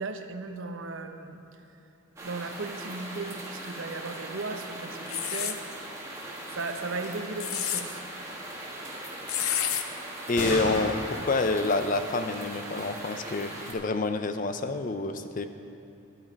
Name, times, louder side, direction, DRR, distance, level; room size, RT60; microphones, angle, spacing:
voice 1, 0.0-1.4 2.2-5.6 6.5-8.0, right 3 dB, 70° right, 7 dB, 0.7 m, -36 dB
sound 1, 2.2-13.7, right 1 dB, 15° right, 1.3 m, -40 dB
sound 2, 5.1-5.6 7.2-7.8 9.3-9.8, left 10 dB, 85° left, 0.7 m, -29 dB
sound 3, 6.7-6.8 7.0-7.1 7.4-7.9 10.4-13.7, left 1 dB, 55° left, 2.1 m, -37 dB
voice 2, 10.3-15.5, left 3 dB, 40° left, 9 dB, 0.4 m, -28 dB
12.0 x 9.0 x 5.2 m, 2.7 s
head